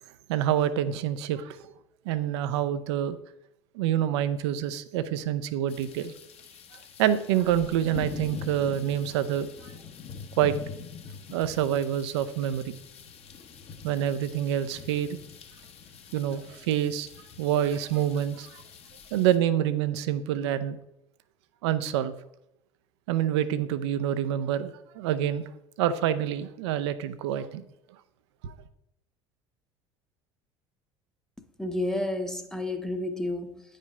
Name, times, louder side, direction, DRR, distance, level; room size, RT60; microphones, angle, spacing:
voice 1, 0.3-1.7 2.0-3.2 3.7-6.1 7.0-9.7 10.4-10.6 11.3-12.7 13.8-15.2 16.1-17.1 17.4-18.6 19.1-20.8 21.6-22.1 23.1-25.4 25.8-27.7 28.4-28.5, right 10 dB, 60° right, 0.6 m, -27 dB
sound 1, 5.7-19.4, left 6 dB, 40° left, 1.2 m, -44 dB
voice 2, 31.6-33.6, left 1 dB, 5° left, 0.9 m, -30 dB
9.2 x 5.1 x 5.4 m
figure-of-eight pair, 65°, 16 cm